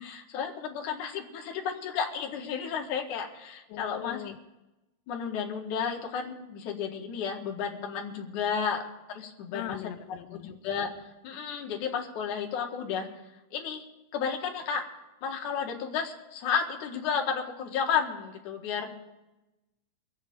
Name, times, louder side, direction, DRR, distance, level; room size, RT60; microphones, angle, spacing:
voice 1, 0.0-4.3 5.1-8.8 9.1-9.9 10.3-10.9 11.2-13.1 13.5-13.9 14.1-14.8 15.2-18.9, left 7 dB, 60° left, 1 dB, 2.9 m, -32 dB
voice 2, 3.7-4.4 9.5-10.5, left 13 dB, 80° left, 8 dB, 2.1 m, -40 dB
23.5 x 8.2 x 5.3 m, 1.0 s
omnidirectional pair, 4.2 m